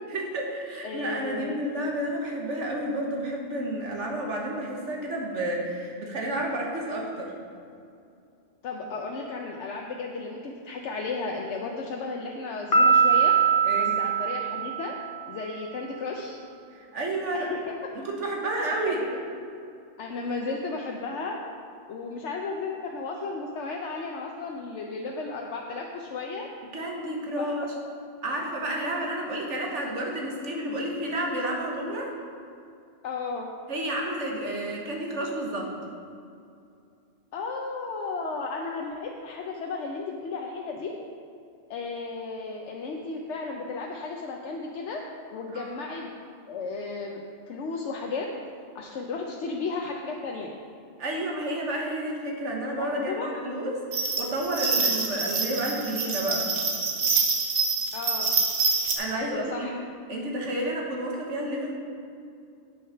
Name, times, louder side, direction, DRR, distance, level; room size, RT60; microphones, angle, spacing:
voice 1, 0.1-7.3 13.6-14.0 16.7-17.5 18.0-19.0 26.7-27.7 28.2-32.1 33.7-35.7 45.5-45.7 51.0-56.5 59.0-59.7 60.1-61.8, right 1 dB, 80° right, -1 dB, 1.7 m, -31 dB
voice 2, 0.8-1.6 8.6-13.4 13.8-14.9 15.3-16.4 17.3-17.6 18.9-19.2 20.0-21.4 21.9-26.5 27.4-27.5 33.0-33.5 37.3-40.9 41.7-45.0 45.3-46.1 46.5-47.2 47.5-48.3 48.7-50.5 52.8-53.4 57.9-58.3 59.1-59.7, left 4 dB, 75° left, 0 dB, 1.0 m, -34 dB
Piano, 12.7-15.3, right 6 dB, 50° left, 1.3 m, -22 dB
sound 1, 53.9-59.0, right 4 dB, 60° right, 1.2 m, -26 dB
8.6 x 6.4 x 5.6 m, 2.5 s
omnidirectional pair, 1.2 m